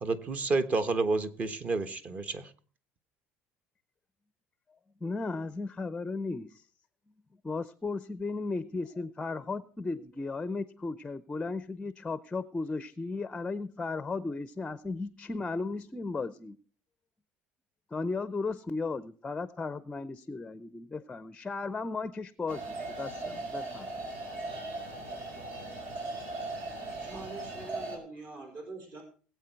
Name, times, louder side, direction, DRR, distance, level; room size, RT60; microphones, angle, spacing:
voice 1, 0.0-2.5, right 3 dB, 30° right, 1.3 m, -30 dB
voice 2, 5.0-6.6 7.4-16.6 17.9-23.9, left 3 dB, 15° left, 0.6 m, -35 dB
sound 1, 22.5-28.0, right 2 dB, 65° right, 5.1 m, -38 dB
voice 3, 27.0-29.0, right 3 dB, 50° right, 4.9 m, -44 dB
19.5 x 8.3 x 4.6 m
cardioid pair, 150°, 4 cm